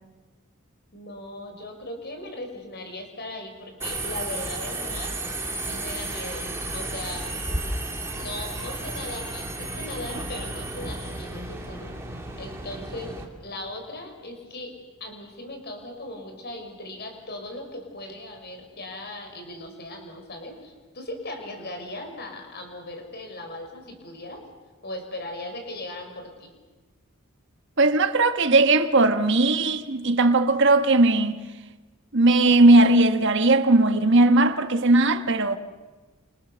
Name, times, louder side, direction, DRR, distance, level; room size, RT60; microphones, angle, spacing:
voice 1, 0.9-5.2 5.7-6.5 6.7-7.3 8.1-13.1 13.4-14.7 15.0-24.4 24.8-26.5, left 1 dB, 45° left, 5.6 m, -38 dB
Subway metro underground, 3.8-13.2, right 2 dB, 10° right, 3.1 m, -33 dB
voice 2, 27.8-31.4 32.1-35.6, right 2 dB, 55° right, 1.3 m, -18 dB
29.0 x 28.0 x 6.9 m
head